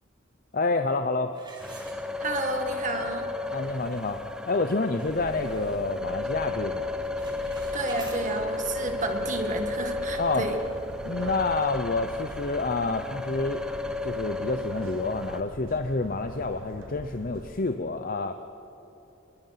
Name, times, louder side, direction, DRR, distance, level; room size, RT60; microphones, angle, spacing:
voice 1, 0.5-1.3 3.5-4.2 4.5-6.9 10.2-10.5 11.0-13.6 14.0-18.3, left 3 dB, 45° left, 7 dB, 0.8 m, -28 dB
sound 1, 1.3-2.6 3.1-3.2 3.7-3.8 4.2-4.5 4.9-6.1 6.3-6.7 6.9-8.2, right 2 dB, 25° right, 4.0 m, -48 dB
sound 2, 1.6-15.4, left 2 dB, 5° right, 1.0 m, -33 dB
voice 2, 2.2-3.3 7.7-10.6, right 2 dB, 40° right, 4 dB, 1.8 m, -31 dB
sound 3, 5.0-17.5, right 1 dB, 90° right, 1.2 m, -44 dB
25.5 x 22.0 x 5.9 m, 3.0 s
head